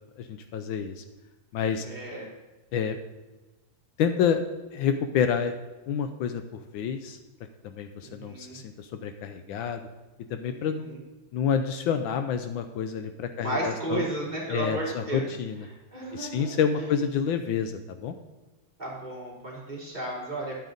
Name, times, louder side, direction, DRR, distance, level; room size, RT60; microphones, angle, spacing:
voice 1, 0.2-1.0 1.5-1.9 2.7-3.0 4.0-4.4 4.7-5.5 5.9-7.2 7.7-9.8 10.3-10.9 11.3-14.0 14.5-15.7 16.1-18.1, left 7 dB, 75° left, 8 dB, 1.3 m, -28 dB
voice 2, 1.8-2.3 8.0-8.6 10.5-11.0 13.4-15.2 15.9-16.9 18.8-20.6, right 2 dB, 20° right, -6 dB, 3.2 m, -34 dB
11.0 x 8.5 x 3.9 m, 1.2 s
omnidirectional pair, 2.2 m